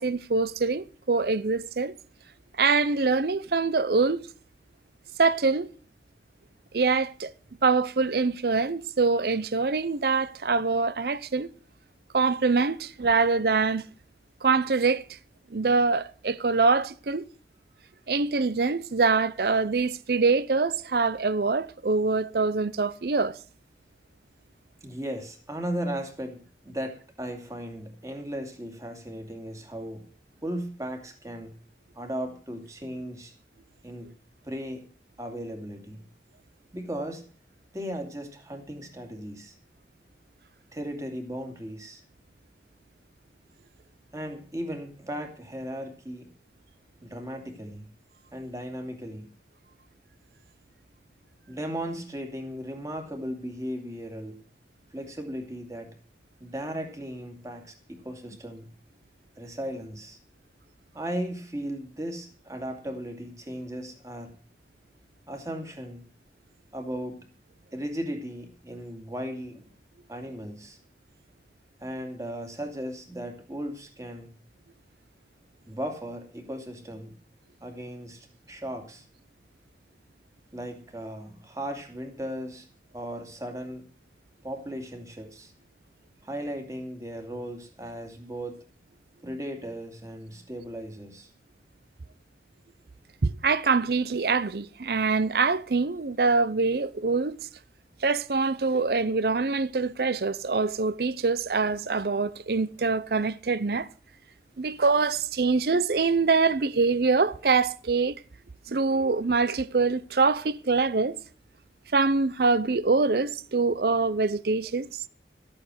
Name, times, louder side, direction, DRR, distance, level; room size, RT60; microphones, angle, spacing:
voice 1, 0.0-1.9 2.6-4.2 5.2-5.7 6.7-7.3 7.6-11.5 12.1-13.8 14.4-15.0 15.5-17.3 18.1-23.4 93.2-97.4 98.0-103.9 104.6-108.1 108.7-111.2 111.9-115.1, right 4 dB, 60° right, 0.6 m, -24 dB
voice 2, 24.8-30.0 30.4-31.5 31.9-33.3 33.8-34.1 34.4-34.8 35.2-36.0 36.7-37.2 37.7-39.6 40.7-42.0 44.1-46.3 47.0-47.9 48.3-49.3 51.5-54.4 54.9-55.9 56.4-58.7 59.4-60.2 60.9-64.3 65.3-66.0 66.7-67.3 67.7-69.6 70.1-70.8 71.8-74.3 75.7-77.1 77.6-79.0 80.5-82.7 82.9-83.8 84.4-85.5 86.2-88.6 89.2-91.3, equal, 20° right, 2.5 m, -36 dB
14.0 x 8.8 x 6.3 m
head